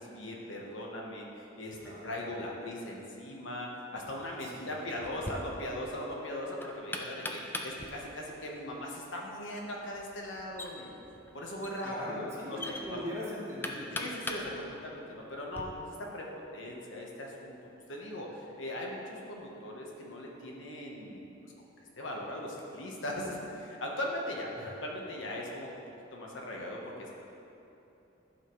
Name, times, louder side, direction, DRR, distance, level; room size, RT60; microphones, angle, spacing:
voice 1, 0.0-11.0 11.3-13.0 14.0-16.2 16.5-17.6 17.9-21.5 22.0-24.5 24.8-25.8 26.1-26.8, left 1 dB, 75° left, -2 dB, 1.2 m, -39 dB
voice 2, 1.8-2.1 4.4-4.7 11.8-14.1 24.6-24.7, left 1 dB, 15° right, -6 dB, 1.4 m, -40 dB
Knock, 5.0-15.6, left 1 dB, 10° left, 0.4 m, -43 dB
12.5 x 5.5 x 3.2 m, 3.0 s
head